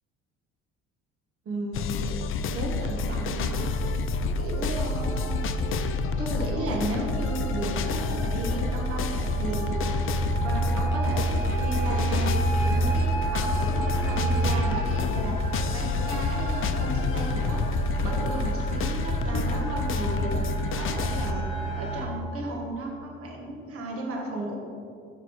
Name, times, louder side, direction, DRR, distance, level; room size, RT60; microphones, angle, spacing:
voice 1, 1.4-2.1 2.5-3.7 4.4-5.5 6.2-9.8 10.4-17.6 18.0-20.4 20.7-21.4 21.8-24.6, right 2 dB, 50° right, -1 dB, 1.2 m, -34 dB
sound 1, 1.7-21.3, left 3 dB, 45° left, 0.4 m, -28 dB
sound 2, 4.9-22.0, right 2 dB, 20° left, 1.1 m, -31 dB
5.5 x 4.8 x 4.4 m, 2.3 s
supercardioid pair, 70°, 29 cm